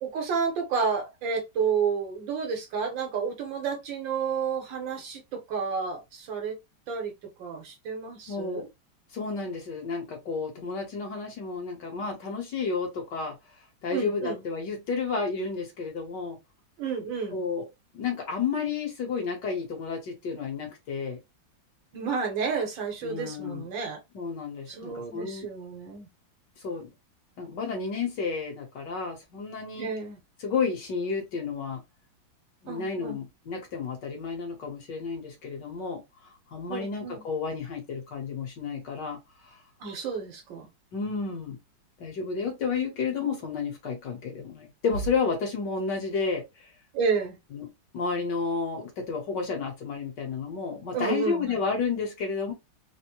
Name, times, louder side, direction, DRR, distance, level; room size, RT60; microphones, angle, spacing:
voice 1, 0.0-6.6 6.9-7.1 7.4-8.6 13.9-14.4 16.8-17.4 21.9-24.0 24.7-26.1 29.8-30.2 32.7-33.2 36.7-37.2 39.8-40.7 46.9-47.4 50.9-51.6, right 5 dB, 75° right, 1.8 m, -31 dB
voice 2, 8.3-8.7 9.1-13.4 13.8-16.4 17.3-17.7 17.9-21.2 23.0-23.7 24.1-25.5 26.6-26.9 27.4-29.9 30.4-31.8 32.6-36.0 36.5-39.2 40.9-41.6 42.0-46.7 47.5-47.7 47.9-52.5, left 5 dB, 65° left, 1.7 m, -31 dB
4.1 x 2.1 x 2.9 m
omnidirectional pair, 2.1 m